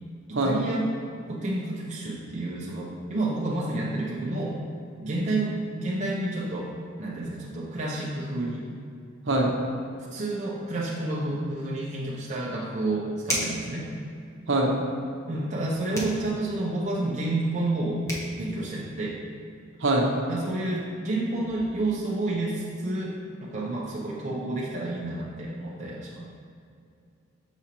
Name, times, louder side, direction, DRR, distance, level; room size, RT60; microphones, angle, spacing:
voice 1, 0.3-0.9 1.3-4.6 5.0-6.7 7.0-8.7 10.1-13.9 15.3-18.1 18.4-19.2 20.3-26.2, right 2 dB, 35° right, -5 dB, 0.6 m, -30 dB
sound 1, 13.2-13.7 15.9-16.2 17.7-17.8 18.1-18.3, right 1 dB, 15° left, 1.0 m, -30 dB
voice 2, 14.5-14.8 19.8-20.1, right 1 dB, 65° right, 0 dB, 0.9 m, -23 dB
6.9 x 5.0 x 3.0 m, 2.5 s
head